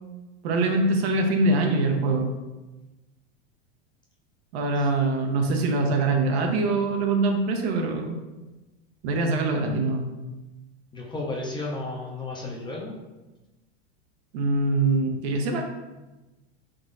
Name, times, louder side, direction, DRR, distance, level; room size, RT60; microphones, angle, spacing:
voice 1, 0.4-2.3 4.5-8.2 9.0-10.1 14.3-15.6, right 2 dB, 75° right, 3 dB, 0.7 m, -23 dB
voice 2, 10.9-12.9, left 2 dB, 15° left, -2 dB, 0.5 m, -33 dB
3.7 x 3.0 x 2.5 m, 1.1 s
supercardioid pair, 115°, 32 cm